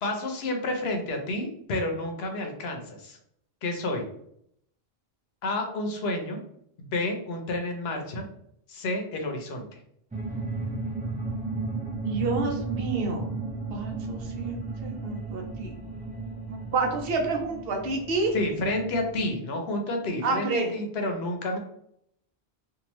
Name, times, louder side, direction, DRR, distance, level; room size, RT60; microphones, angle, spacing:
voice 1, 0.0-3.2 3.6-4.0 5.4-6.4 6.8-8.2 8.7-9.8 18.3-21.6, left 2 dB, 80° left, 3 dB, 0.9 m, -30 dB
sound 1, 10.1-19.3, right 3 dB, 10° right, 0.6 m, -34 dB
voice 2, 12.1-13.3 13.7-15.7 16.5-18.3 20.2-20.7 21.5-21.6, right 3 dB, 70° right, 2 dB, 0.9 m, -29 dB
2.7 x 2.5 x 3.0 m, 0.71 s
omnidirectional pair, 1.0 m